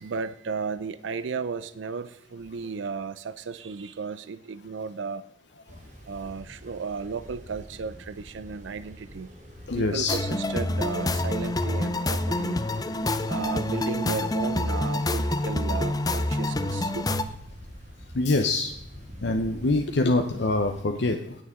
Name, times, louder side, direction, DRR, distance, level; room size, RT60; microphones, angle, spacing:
voice 1, 0.0-5.2 6.1-9.3 9.7-12.6 13.3-17.1, right 5 dB, 80° right, 14 dB, 0.5 m, -34 dB
sound 1, 5.7-20.8, equal, 40° right, 1.9 m, -46 dB
voice 2, 9.7-10.2 13.0-13.1 18.1-18.7 19.2-21.3, left 2 dB, 65° left, 5 dB, 0.8 m, -25 dB
sound 2, 10.1-17.2, left 1 dB, 20° left, 0.6 m, -27 dB
18.0 x 6.9 x 3.7 m, 0.79 s
head